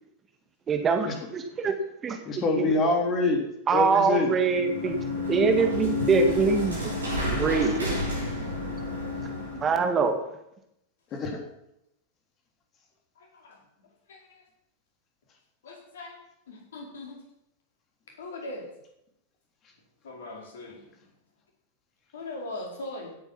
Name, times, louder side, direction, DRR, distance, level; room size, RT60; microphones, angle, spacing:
voice 1, 0.7-1.8 2.0-2.2 2.6-2.7 3.7-5.0 5.3-6.9 7.3-7.9 9.6-10.2, right 5 dB, 25° right, 5 dB, 1.9 m, -24 dB
voice 2, 2.2-3.4 3.7-4.3 11.1-11.4, left 3 dB, 30° left, 3 dB, 3.5 m, -25 dB
sound 1, 4.3-9.8, left 2 dB, 75° right, 6.8 m, -30 dB
voice 3, 13.2-14.4 15.6-16.2 16.5-17.2 18.1-18.7 20.0-20.9 22.1-23.2, left 2 dB, 60° left, 0 dB, 4.5 m, -41 dB
16.5 x 9.3 x 5.9 m, 0.81 s
figure-of-eight pair, 90°, 0 cm